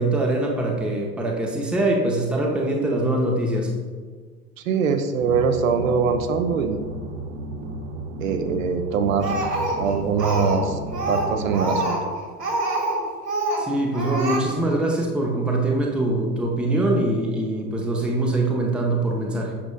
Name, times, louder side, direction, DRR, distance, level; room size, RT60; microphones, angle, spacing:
voice 1, 0.0-3.7 13.6-19.5, right 2 dB, ahead, -1 dB, 0.6 m, -23 dB
voice 2, 4.7-6.8 8.2-9.4 9.8-10.8 11.1-12.0, right 5 dB, 60° right, 7 dB, 0.7 m, -22 dB
sound 1, 5.2-11.6, right 1 dB, 35° right, 1.0 m, -34 dB
Speech, 9.2-10.6 10.9-13.0 13.2-13.7 13.9-14.4, right 2 dB, 85° right, 1.5 m, -25 dB
8.4 x 6.0 x 2.3 m, 1.5 s
figure-of-eight pair, 90°, 46 cm